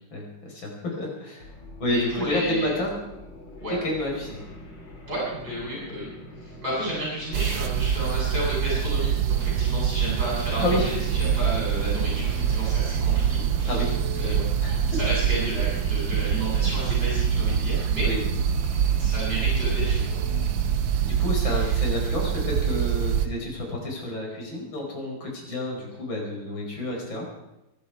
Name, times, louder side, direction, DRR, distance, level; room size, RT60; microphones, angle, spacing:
voice 1, 0.1-1.5 1.8-2.9 3.7-4.4 10.6-10.9 13.6-14.8 18.0-18.3 21.0-27.3, left 1 dB, 85° left, 0 dB, 5.7 m, -30 dB
sound 1, 1.4-21.3, left 2 dB, 65° left, 3.2 m, -41 dB
voice 2, 1.9-2.8 3.6-3.8 5.1-6.1 6.4-18.1 19.0-20.2 21.4-21.8, right 1 dB, 55° right, -6 dB, 8.3 m, -32 dB
sound 2, 7.3-23.3, right 8 dB, 90° right, 1.6 m, -25 dB
24.5 x 11.5 x 4.7 m, 0.93 s
omnidirectional pair, 2.1 m